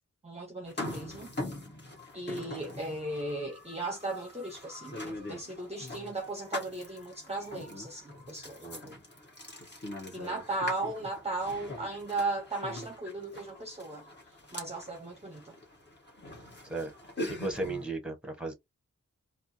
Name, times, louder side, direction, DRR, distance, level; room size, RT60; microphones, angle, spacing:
voice 1, 0.2-1.3 2.1-8.6 10.1-14.1 14.5-15.6, right 2 dB, 20° right, 0.7 m, -36 dB
sound 1, 0.7-17.9, left 1 dB, 35° left, 1.3 m, -43 dB
voice 2, 8.6-9.0 16.7-16.9 17.4-18.5, right 2 dB, 5° right, 1.1 m, -35 dB
4.3 x 2.0 x 2.7 m
wide cardioid pair, 90°, 30 cm